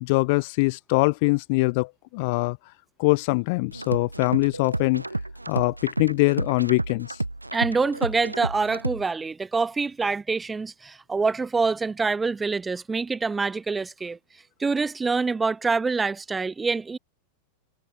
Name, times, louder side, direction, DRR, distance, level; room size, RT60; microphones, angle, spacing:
voice 1, 0.0-2.6 3.0-5.0 5.5-7.2, left 26 dB, 50° left, 0.6 m, -23 dB
sound 1, 3.7-9.1, right 2 dB, 90° right, 0.8 m, -31 dB
voice 2, 7.5-14.2 14.6-17.0, right 4 dB, 15° right, 2.3 m, -26 dB
figure-of-eight pair, 90°, 0 cm